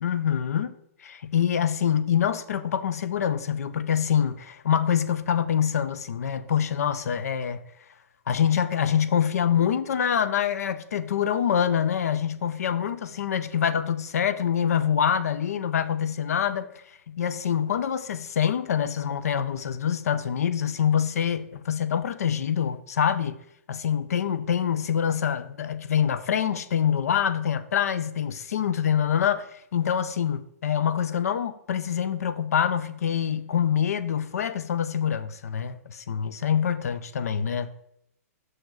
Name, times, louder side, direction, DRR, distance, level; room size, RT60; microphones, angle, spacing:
voice 1, 0.0-0.7 1.0-7.6 8.3-16.7 17.1-23.4 23.7-29.5 29.7-37.7, left 8 dB, 90° left, 0.5 m, -25 dB
6.1 x 4.9 x 3.9 m
hypercardioid pair, 170°, 8 cm